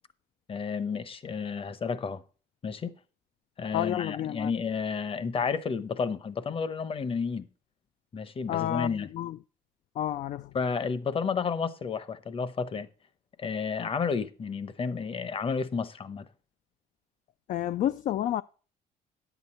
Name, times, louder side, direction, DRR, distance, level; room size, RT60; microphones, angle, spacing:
voice 1, 0.5-2.2 2.6-2.9 3.6-7.5 8.1-9.1 10.5-12.9 13.4-16.3, left 5 dB, 35° left, 0.9 m, -31 dB
voice 2, 3.7-4.5 8.5-9.4 10.0-10.5 17.5-18.4, left 12 dB, 50° left, 0.4 m, -30 dB
10.5 x 8.2 x 4.2 m
cardioid pair, 110°, 17 cm